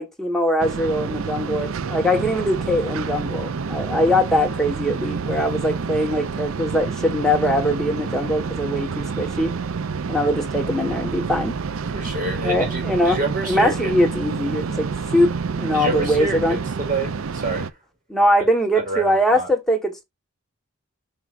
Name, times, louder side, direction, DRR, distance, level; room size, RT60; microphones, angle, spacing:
voice 1, 0.0-9.5 10.1-11.5 12.4-13.2 13.4-16.6 18.1-20.0, equal, ahead, 1.3 m, -22 dB
sound 1, 0.6-17.7, right 5 dB, 70° right, 0.5 m, -28 dB
voice 2, 11.9-13.9 15.7-17.7 18.7-19.5, right 2 dB, 40° right, 4.6 m, -28 dB
8.0 x 5.7 x 2.5 m
head